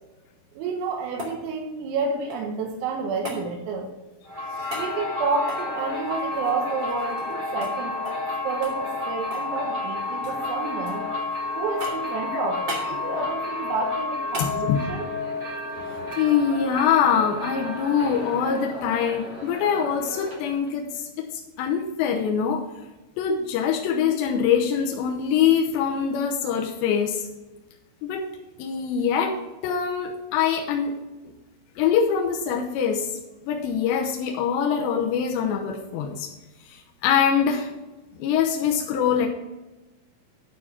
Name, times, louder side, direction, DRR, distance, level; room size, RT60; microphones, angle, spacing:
sound 1, 0.6-2.6 3.2-3.4 4.7-4.9 5.4-7.4 7.6-7.8 8.0-8.3 8.6-9.5 9.8-10.4 10.9-11.4 11.8-12.2 12.7-12.9 14.3-14.5 16.9-17.0, equal, 35° right, 2.1 m, -37 dB
voice 1, 0.6-3.9 4.8-8.2 8.4-11.0 11.6-15.1, right 4 dB, 85° right, 1 dB, 3.9 m, -30 dB
sound 2, 4.2-20.7, left 3 dB, 50° right, 0.8 m, -31 dB
voice 2, 14.4-14.8 16.2-20.8 21.6-22.6 23.2-27.3 28.0-28.3 28.6-30.9 31.8-33.1 33.4-36.3 37.0-37.7 38.2-39.3, left 7 dB, 80° left, 1 dB, 2.6 m, -23 dB
11.5 x 4.6 x 5.8 m, 1.1 s
omnidirectional pair, 6.0 m